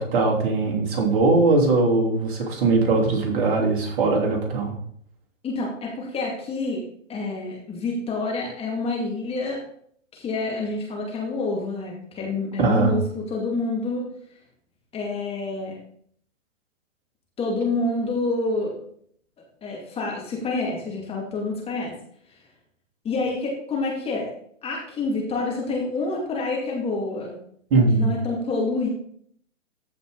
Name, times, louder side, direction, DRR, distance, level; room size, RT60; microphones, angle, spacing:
voice 1, 0.0-4.7 12.6-12.9 27.7-28.1, right 3 dB, 40° right, 0 dB, 2.9 m, -20 dB
voice 2, 5.4-6.8 7.1-9.6 10.1-14.1 14.9-15.8 17.4-18.8 19.6-21.9 23.0-24.3 24.6-27.4 27.9-28.9, left 3 dB, 15° left, -1 dB, 2.2 m, -27 dB
14.5 x 5.3 x 4.0 m, 0.64 s
hypercardioid pair, 125°, 38 cm